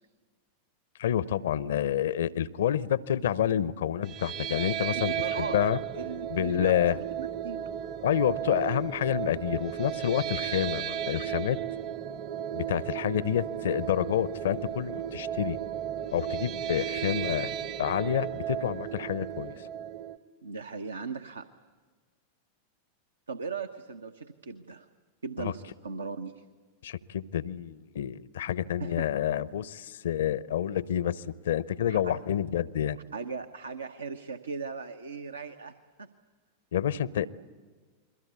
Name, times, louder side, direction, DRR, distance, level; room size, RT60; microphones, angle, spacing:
voice 1, 1.0-5.8 6.3-7.0 8.0-11.6 12.5-15.6 16.1-17.5 17.8-19.5 25.4-25.5 26.8-33.0 36.7-37.3, left 10 dB, 60° left, 20 dB, 0.7 m, -28 dB
sound 1, 4.0-20.2, right 10 dB, 35° right, 1.0 m, -34 dB
voice 2, 4.9-5.6 5.9-7.7 20.4-21.5 23.3-24.9 25.2-26.4 28.8-29.0 31.9-32.1 33.1-35.7 36.0-36.1, right 4 dB, 75° right, 8 dB, 0.9 m, -38 dB
29.5 x 22.5 x 8.3 m, 1.5 s
figure-of-eight pair, 90°, 0 cm